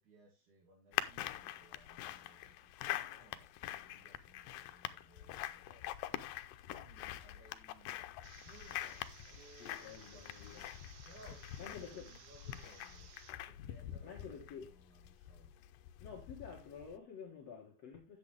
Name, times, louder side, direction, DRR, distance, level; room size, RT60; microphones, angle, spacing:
voice 1, 0.0-6.3 6.6-8.0 8.4-10.7 11.0-13.1 13.5-15.5, right 2 dB, 65° right, 4.4 m, -63 dB
sound 1, 0.9-17.0, left 13 dB, 90° left, 2.4 m, -45 dB
sound 2, 8.2-13.3, right 8 dB, 90° right, 3.0 m, -59 dB
voice 2, 9.6-10.6 11.6-12.1 14.0-14.7 16.0-18.2, left 6 dB, 55° left, 2.7 m, -50 dB
10.5 x 7.8 x 3.3 m
omnidirectional pair, 3.8 m